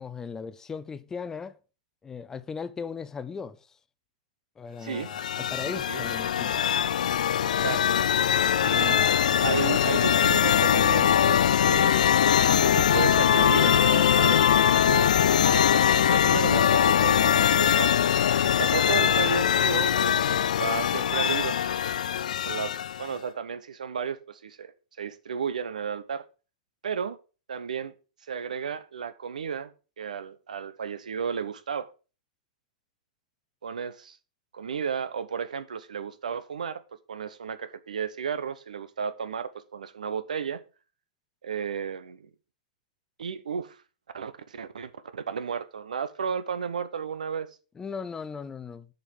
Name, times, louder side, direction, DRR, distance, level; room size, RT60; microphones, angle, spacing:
voice 1, 0.0-1.6 2.0-3.6 4.6-6.6 47.8-48.9, left 5 dB, 15° left, 0.5 m, -37 dB
sound 1, 4.9-23.1, left 9 dB, 80° left, 0.4 m, -22 dB
voice 2, 5.7-6.1 7.4-7.8 8.7-12.3 12.6-17.9 18.6-21.6 22.4-22.7 23.0-24.7 25.0-26.3 26.8-27.2 27.5-27.9 28.3-31.9 33.6-34.2 34.5-36.8 37.1-40.6 41.4-42.3 43.2-43.8 44.1-47.5, right 7 dB, 90° right, 0.9 m, -33 dB
7.0 x 5.4 x 6.0 m
hypercardioid pair, 135°, 4 cm